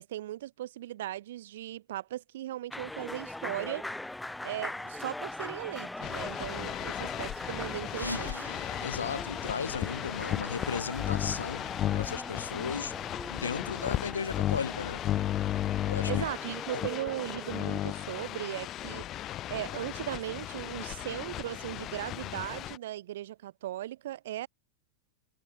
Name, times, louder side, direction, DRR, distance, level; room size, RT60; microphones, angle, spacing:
voice 1, 0.0-3.9 4.4-8.4 16.1-24.5, right 13 dB, 55° right, 1.5 m, -38 dB
sound 1, 2.7-17.6, left 1 dB, 5° left, 4.9 m, -41 dB
sound 2, 6.0-22.8, left 13 dB, 30° left, 1.3 m, -35 dB
sound 3, 7.9-10.5, equal, 90° right, 6.4 m, -43 dB
voice 2, 8.8-11.6 11.9-12.9 13.3-15.0 15.9-16.1, left 6 dB, 75° left, 1.7 m, -35 dB
figure-of-eight pair, 90°, 0 cm